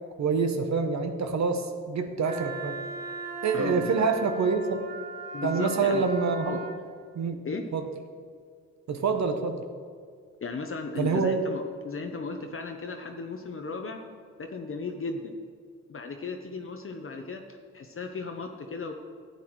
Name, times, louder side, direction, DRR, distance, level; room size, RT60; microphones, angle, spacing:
voice 1, 0.2-2.8 3.4-4.9 5.4-6.6 7.1-7.4 7.7-7.8 8.9-9.6 11.0-11.4, right 4 dB, 60° right, 6 dB, 0.8 m, -26 dB
Wind instrument woodwind instrument, 2.2-6.8, right 3 dB, 30° right, 1.2 m, -38 dB
voice 2, 3.5-3.9 5.3-6.1 6.4-6.6 7.4-7.6 10.4-14.0 14.4-15.3 15.9-17.4 17.7-18.9, left 4 dB, 45° left, 4 dB, 0.8 m, -35 dB
12.5 x 8.2 x 3.1 m, 2.1 s
cardioid pair, 70°, 31 cm